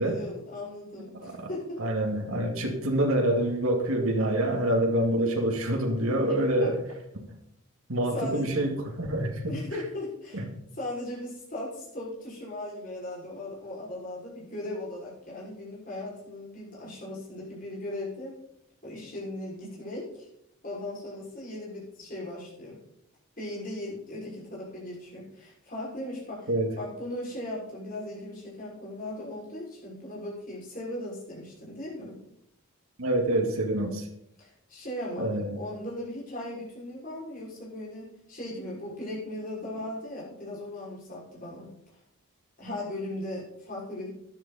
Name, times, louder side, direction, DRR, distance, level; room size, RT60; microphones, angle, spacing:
voice 1, 0.0-1.8 6.3-6.7 8.1-8.6 9.5-10.4 10.7-18.3 18.8-20.3 20.6-22.8 23.4-32.2 34.4-35.3 35.5-41.7 42.6-44.1, left 1 dB, 40° left, -5 dB, 5.9 m, -38 dB
voice 2, 1.8-6.8 7.1-7.2 7.9-9.6 10.3-10.4 26.5-26.7 33.0-34.1 35.2-35.6, right 1 dB, 75° right, 3 dB, 2.2 m, -26 dB
13.0 x 11.0 x 4.2 m, 0.75 s
head